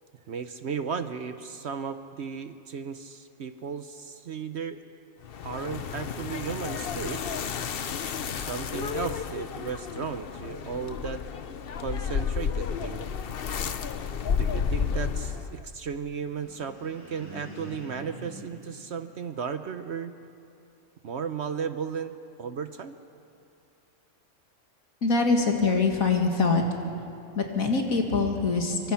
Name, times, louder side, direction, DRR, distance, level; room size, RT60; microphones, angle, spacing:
voice 1, 0.3-4.8 5.4-7.2 8.4-11.2 11.8-13.0 14.4-20.1 21.0-23.0, right 6 dB, 55° right, 10 dB, 0.9 m, -35 dB
sound 1, 5.2-15.6, left 6 dB, 50° left, 0.8 m, -32 dB
sound 2, 16.1-19.7, equal, 10° right, 7.3 m, -46 dB
voice 2, 25.0-26.6 27.3-28.9, left 4 dB, 70° left, 2 dB, 2.6 m, -24 dB
25.0 x 24.0 x 5.7 m, 2.6 s
omnidirectional pair, 1.5 m